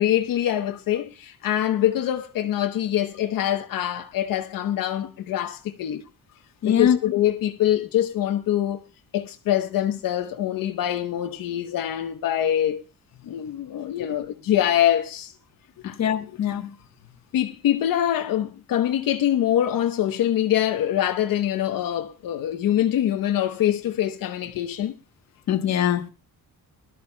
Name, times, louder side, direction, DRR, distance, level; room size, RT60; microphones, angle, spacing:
voice 1, 0.0-6.0 6.6-8.8 9.1-12.8 13.3-15.3 15.8-16.0 17.3-24.9, left 11 dB, 75° left, 1.0 m, -24 dB
voice 2, 6.6-7.0 14.0-14.1 15.8-16.7 25.5-26.1, left 9 dB, 50° left, 1.2 m, -23 dB
21.0 x 12.5 x 2.2 m
cardioid pair, 180°, 34 cm